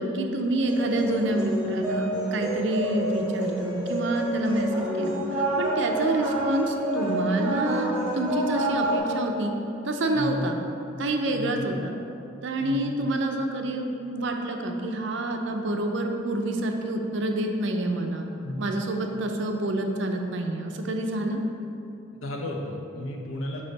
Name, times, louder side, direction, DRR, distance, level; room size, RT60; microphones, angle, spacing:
voice 1, 0.0-9.5 9.8-10.6 11.0-11.9 12.4-18.3 18.6-21.4, right 1 dB, 60° right, 3 dB, 0.5 m, -27 dB
sound 1, 0.6-9.0, right 1 dB, 5° right, 1.2 m, -29 dB
voice 2, 10.1-10.5 11.3-11.6 12.6-12.9 18.4-18.6 22.2-23.7, left 1 dB, 80° left, 0 dB, 0.8 m, -33 dB
5.5 x 4.9 x 4.0 m, 2.7 s
head